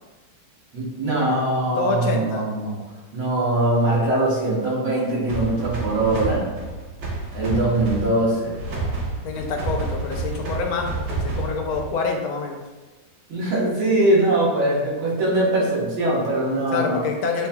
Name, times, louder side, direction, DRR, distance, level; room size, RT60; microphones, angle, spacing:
voice 1, 0.7-2.8 3.1-6.4 7.3-8.5 13.3-17.0, right 1 dB, 85° right, -6 dB, 2.2 m, -22 dB
voice 2, 1.7-2.4 9.2-12.6 16.7-17.5, left 4 dB, 90° left, 1 dB, 1.6 m, -26 dB
sound 1, 5.3-12.1, right 3 dB, 65° right, 1.3 m, -29 dB
7.7 x 2.8 x 2.3 m, 1.2 s
omnidirectional pair, 2.2 m